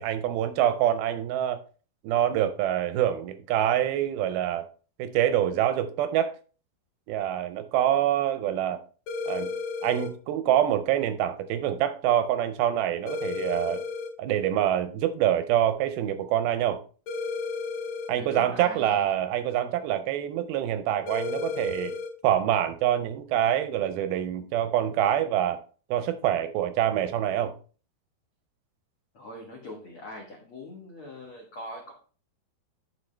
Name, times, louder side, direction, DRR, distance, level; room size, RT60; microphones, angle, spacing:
voice 1, 0.0-1.6 2.0-4.7 5.0-6.4 7.1-8.8 9.3-9.5 9.8-13.8 14.2-16.8 18.1-22.0 22.2-25.6 25.9-27.5, right 11 dB, 80° right, 2.2 m, -25 dB
sound 1, 9.1-10.1 13.1-14.1 17.1-18.1 21.1-22.1, left 4 dB, 50° left, 2.7 m, -32 dB
voice 2, 18.1-19.0 29.1-31.9, left 1 dB, 75° left, 1.2 m, -42 dB
12.0 x 4.9 x 3.3 m
omnidirectional pair, 4.8 m